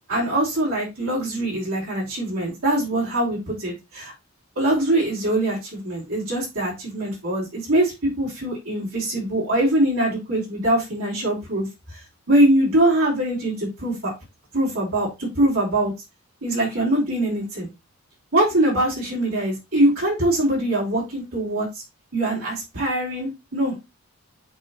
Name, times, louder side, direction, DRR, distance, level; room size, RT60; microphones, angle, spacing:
voice 1, 0.1-4.1 4.5-14.1 14.5-15.9 16.4-17.7 18.3-21.8 22.1-23.7, right 1 dB, 90° right, -6 dB, 4.5 m, -23 dB
10.5 x 3.6 x 3.0 m, 0.23 s
head